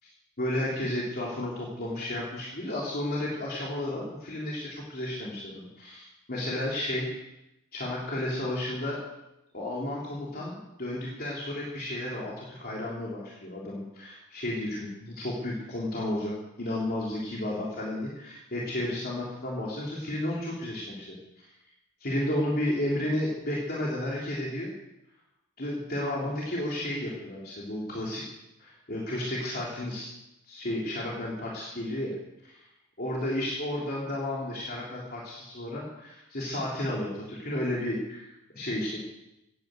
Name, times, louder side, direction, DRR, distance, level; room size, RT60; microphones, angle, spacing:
voice 1, 0.4-7.2 7.7-9.0 9.5-21.5 22.0-24.7 25.6-28.2 28.6-30.1 30.5-32.1 33.0-39.0, left 1 dB, 45° left, -4 dB, 3.5 m, -32 dB
16.5 x 10.5 x 7.9 m, 0.90 s
head